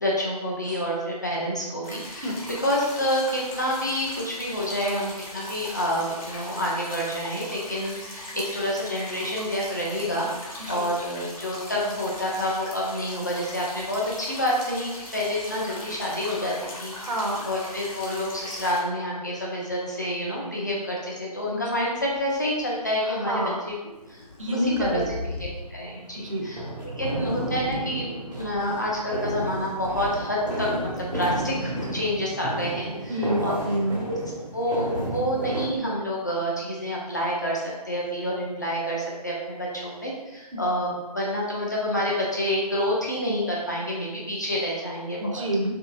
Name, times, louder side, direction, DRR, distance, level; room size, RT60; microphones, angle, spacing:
voice 1, 0.0-16.9 17.4-23.3 24.1-24.2 24.7-25.0 25.7-26.6 27.0-33.5 34.1-34.2 34.5-45.4, equal, 30° left, -4 dB, 0.4 m, -28 dB
sound 1, 1.8-18.8, left 1 dB, 55° left, 1.0 m, -40 dB
voice 2, 16.9-17.4 23.0-23.6 24.4-25.1 26.2-26.4 33.1-34.0 45.2-45.7, equal, 55° right, 0 dB, 0.6 m, -27 dB
sound 2, 22.0-22.8 23.7-25.6 27.1-27.8 28.3-29.0 29.4-30.1, left 3 dB, 75° left, 0.6 m, -39 dB
sound 3, 25.5-35.7, right 1 dB, 90° right, 1.0 m, -32 dB
2.8 x 2.7 x 2.3 m, 1.1 s
figure-of-eight pair, 150°, 21 cm